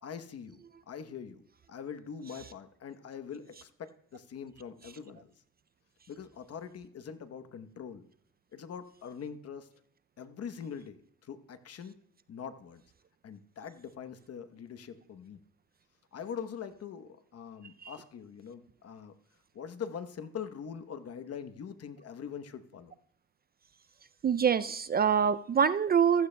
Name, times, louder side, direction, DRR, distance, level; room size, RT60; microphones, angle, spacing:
voice 1, 0.0-5.3 6.1-8.0 8.5-9.7 10.2-11.9 12.3-12.8 13.2-15.4 16.1-19.1 19.5-22.9, left 7 dB, 55° left, 10 dB, 1.0 m, -43 dB
voice 2, 24.2-26.3, right 7 dB, 30° right, 14 dB, 0.4 m, -25 dB
15.0 x 14.5 x 2.2 m, 0.65 s
cardioid pair, 90°, 30 cm